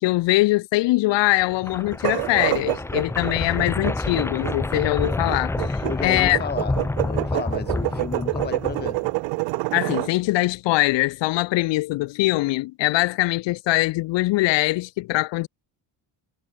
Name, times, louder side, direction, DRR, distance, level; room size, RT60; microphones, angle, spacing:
voice 1, 0.0-6.4 9.7-15.5, left 19 dB, 75° left, 1.0 m, -22 dB
sound 1, 1.3-9.3, left 2 dB, 5° left, 0.4 m, -29 dB
sound 2, 1.9-10.1, right 26 dB, 90° right, 0.5 m, -27 dB
voice 2, 5.8-9.1, left 6 dB, 20° left, 1.3 m, -32 dB
cardioid pair, 125°, 44 cm